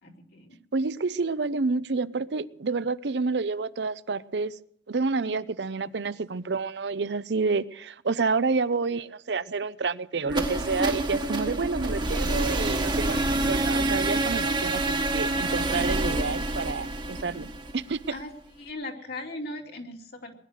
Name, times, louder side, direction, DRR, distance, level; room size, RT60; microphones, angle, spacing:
voice 1, 0.0-0.6 5.2-5.4 17.1-17.5 18.1-18.3 18.6-20.3, left 2 dB, 60° left, 2.8 m, -39 dB
voice 2, 0.7-4.6 4.9-17.5 17.7-18.0, right 4 dB, 70° right, 0.6 m, -29 dB
sound 1, 10.3-18.2, right 2 dB, 25° right, 1.4 m, -27 dB
20.0 x 11.0 x 6.5 m
head